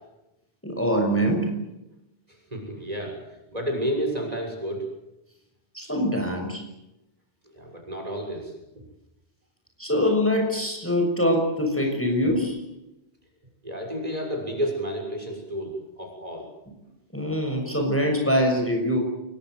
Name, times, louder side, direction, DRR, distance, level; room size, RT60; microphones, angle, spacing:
voice 1, 0.6-1.6 5.7-6.6 9.8-12.6 17.1-19.0, equal, 10° left, 2 dB, 6.4 m, -23 dB
voice 2, 2.5-3.2 3.5-4.8 7.6-8.5 13.6-16.4, equal, 40° right, 2 dB, 6.9 m, -30 dB
28.5 x 21.0 x 8.1 m, 0.93 s
omnidirectional pair, 1.0 m